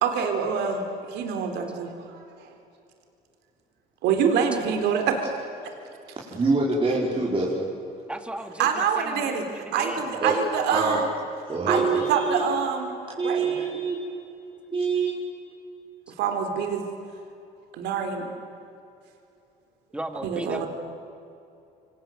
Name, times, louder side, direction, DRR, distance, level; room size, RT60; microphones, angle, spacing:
voice 1, 0.0-2.5 4.0-5.4 8.6-11.1 11.7-13.0 13.2-13.6 16.2-16.9 17.7-18.3 20.2-20.7, right 6 dB, 85° right, 5 dB, 3.9 m, -26 dB
voice 2, 6.3-7.7 10.2-10.4 10.7-11.0 11.5-12.4 13.2-14.0 14.7-15.2, right 3 dB, 30° right, -5 dB, 5.3 m, -25 dB
voice 3, 8.1-10.2 19.9-20.7, right 1 dB, 5° right, 7 dB, 2.5 m, -36 dB
28.0 x 25.0 x 8.0 m, 2.7 s
cardioid pair, 110°, 17 cm